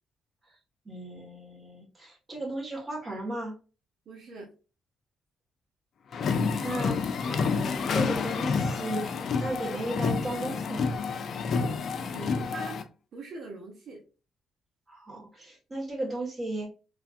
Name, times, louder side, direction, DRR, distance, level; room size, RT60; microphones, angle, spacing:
voice 1, 0.8-3.5 6.6-10.9 14.9-16.7, right 1 dB, 25° right, -1 dB, 1.5 m, -35 dB
voice 2, 4.1-4.5 12.1-12.8 13.1-14.0, right 3 dB, 60° right, -2 dB, 0.9 m, -42 dB
sound 1, 6.1-12.8, left 5 dB, 60° left, 0.4 m, -29 dB
3.2 x 2.5 x 2.5 m, 0.34 s
cardioid pair, 90°, 0 cm